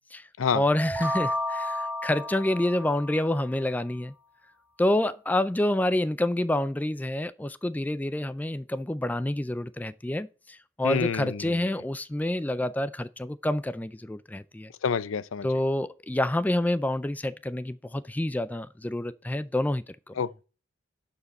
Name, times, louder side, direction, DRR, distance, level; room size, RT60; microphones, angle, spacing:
voice 1, 0.5-4.1 4.8-14.7 15.4-20.1, left 1 dB, 10° left, 0.3 m, -28 dB
sound 1, 0.8-3.5, left 1 dB, 10° right, 0.8 m, -32 dB
voice 2, 10.8-11.7 14.8-15.5 20.2-20.4, left 6 dB, 85° left, 0.5 m, -28 dB
11.5 x 4.8 x 4.2 m
head